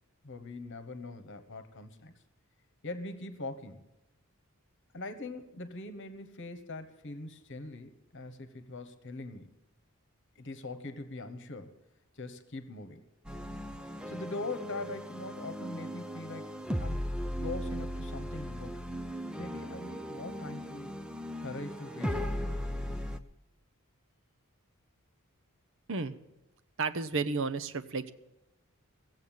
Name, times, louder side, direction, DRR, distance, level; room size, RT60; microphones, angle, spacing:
voice 1, 0.2-2.1 2.8-3.8 4.9-9.5 10.3-11.7 12.1-13.1 14.1-16.5 16.8-17.1 17.4-18.9 19.4-21.0 21.4-22.6, left 2 dB, 55° left, 10 dB, 1.2 m, -42 dB
sound 1, 13.2-23.2, equal, 5° right, 0.5 m, -37 dB
voice 2, 26.8-28.1, right 4 dB, 60° right, 11 dB, 0.8 m, -32 dB
16.5 x 8.0 x 9.0 m, 0.90 s
head